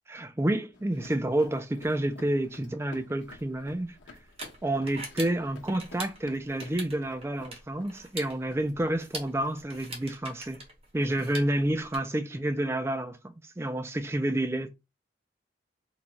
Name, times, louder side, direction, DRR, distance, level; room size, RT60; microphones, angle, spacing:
voice 1, 0.1-4.0 4.6-10.6 10.9-14.7, right 1 dB, 15° right, 0.4 m, -29 dB
sound 1, 0.7-9.8, left 3 dB, 80° left, 0.8 m, -53 dB
sound 2, 3.3-12.0, right 2 dB, 30° right, 0.8 m, -44 dB
3.1 x 2.3 x 3.8 m
head